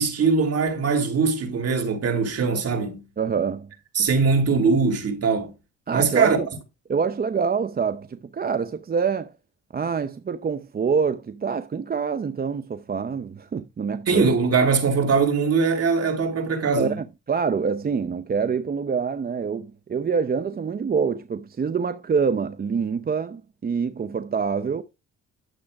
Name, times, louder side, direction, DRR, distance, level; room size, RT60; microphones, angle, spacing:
voice 1, 0.0-3.0 3.9-5.5 5.9-6.4 14.1-17.0, right 4 dB, 55° right, 3.0 m, -21 dB
voice 2, 3.2-3.7 5.9-6.5 6.9-9.3 9.7-14.3 16.8-24.8, right 6 dB, 30° right, 0.6 m, -26 dB
11.5 x 7.5 x 2.4 m
cardioid pair, 90°, 30 cm